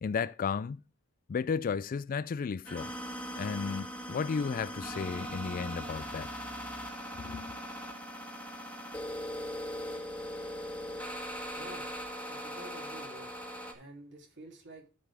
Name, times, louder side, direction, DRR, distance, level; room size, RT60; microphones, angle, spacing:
voice 1, 0.0-0.8 1.3-2.9 3.4-6.3 7.2-7.6, left 6 dB, 40° left, 0.3 m, -34 dB
sound 1, 2.6-13.7, equal, 5° left, 1.5 m, -40 dB
voice 2, 11.5-11.9 12.3-13.3 13.7-14.9, right 1 dB, 55° right, 3.2 m, -49 dB
13.5 x 5.2 x 3.5 m
head